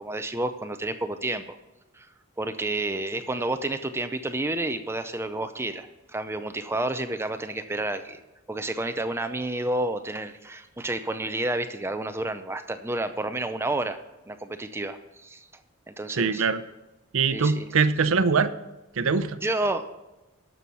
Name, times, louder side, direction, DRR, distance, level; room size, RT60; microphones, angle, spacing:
voice 1, 0.0-1.6 2.0-2.1 2.4-8.2 8.5-14.0 14.3-15.4 15.9-16.4 17.3-17.7 19.4-19.9, right 2 dB, 10° right, 9 dB, 0.5 m, -30 dB
voice 2, 16.1-16.6 17.1-18.5 19.0-19.4, right 5 dB, 70° right, 12 dB, 0.6 m, -23 dB
11.0 x 7.0 x 6.2 m, 1.0 s
head